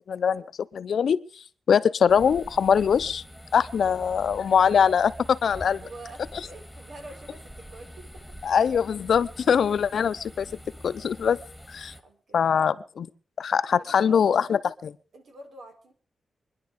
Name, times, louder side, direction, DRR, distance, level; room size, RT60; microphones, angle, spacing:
voice 1, 0.1-0.4 0.7-1.2 1.7-3.2 3.5-5.8 8.4-10.5 10.8-11.4 11.7-11.9 12.3-13.1 13.4-14.9, left 7 dB, 75° left, 15 dB, 0.7 m, -22 dB
sound 1, 2.1-12.0, equal, 5° right, 1.8 m, -45 dB
voice 2, 3.8-4.3 5.8-8.4 11.9-12.9 13.8-14.4 15.1-15.9, right 2 dB, 90° right, 4 dB, 3.9 m, -47 dB
24.5 x 10.5 x 5.1 m, 0.43 s
wide cardioid pair, 115°, 0 cm